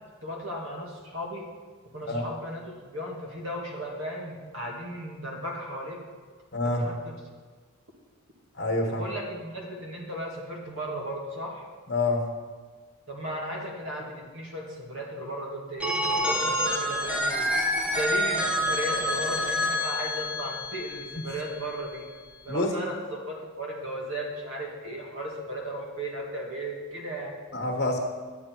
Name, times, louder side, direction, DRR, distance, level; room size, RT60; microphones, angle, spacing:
voice 1, 0.2-1.4 1.9-6.0 6.6-7.1 8.9-11.7 13.1-17.5 17.9-22.1 22.4-27.4, equal, 65° right, -1 dB, 2.2 m, -35 dB
voice 2, 6.5-6.8 8.5-9.0 11.9-12.2 22.5-22.7 27.5-28.0, left 2 dB, 50° left, 1 dB, 1.5 m, -26 dB
Telephone, 15.8-21.6, equal, 5° right, 0.9 m, -28 dB
9.7 x 9.4 x 4.6 m, 1.5 s
head